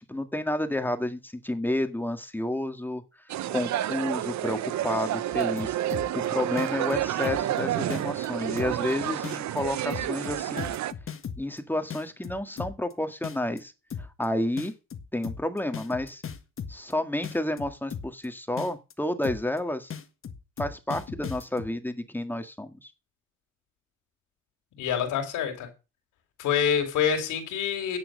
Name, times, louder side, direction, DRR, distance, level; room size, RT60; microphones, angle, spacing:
voice 1, 0.1-3.0 3.5-5.8 6.1-10.7 11.4-13.7 14.0-14.7 15.1-16.2 16.7-19.9 20.6-22.9, left 1 dB, 5° left, 1.7 m, -30 dB
sound 1, 3.3-10.9, right 12 dB, 65° right, 0.8 m, -30 dB
sound 2, 5.3-6.2 6.6-7.6 7.9-8.3 8.6-8.9 9.2-11.6 11.9-12.9 13.2-13.6 13.9-14.2 14.6-16.9 17.2-18.2 18.6-18.9 19.2-19.6 19.9-21.7, left 7 dB, 45° left, 1.6 m, -37 dB
voice 2, 24.8-25.7 26.4-28.0, left 8 dB, 90° left, 3.8 m, -26 dB
10.5 x 7.6 x 6.5 m
cardioid pair, 90°, 30 cm